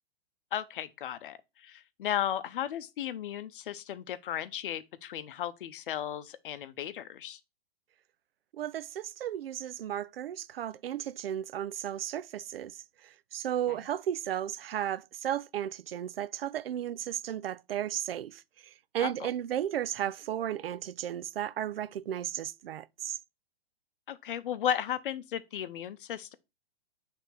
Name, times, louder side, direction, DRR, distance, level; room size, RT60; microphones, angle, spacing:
voice 1, 0.5-7.4 19.0-19.3 24.1-26.3, left 10 dB, 65° left, 0.7 m, -35 dB
voice 2, 8.5-23.2, right 11 dB, 75° right, 0.5 m, -34 dB
6.7 x 3.5 x 4.4 m
hypercardioid pair, 115°, 29 cm